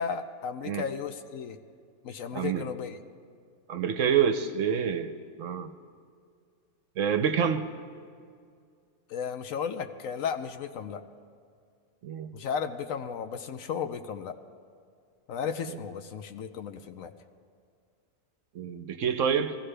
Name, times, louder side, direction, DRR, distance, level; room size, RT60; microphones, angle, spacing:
voice 1, 0.0-1.6 2.0-3.0 9.1-11.0 12.3-14.4 15.3-17.1, left 7 dB, 70° left, 8 dB, 1.0 m, -34 dB
voice 2, 2.3-2.7 3.7-5.1 5.4-5.7 7.0-7.7 12.0-12.3 18.5-19.6, right 7 dB, 65° right, 9 dB, 0.9 m, -27 dB
21.5 x 15.0 x 3.3 m, 2.2 s
omnidirectional pair, 1.6 m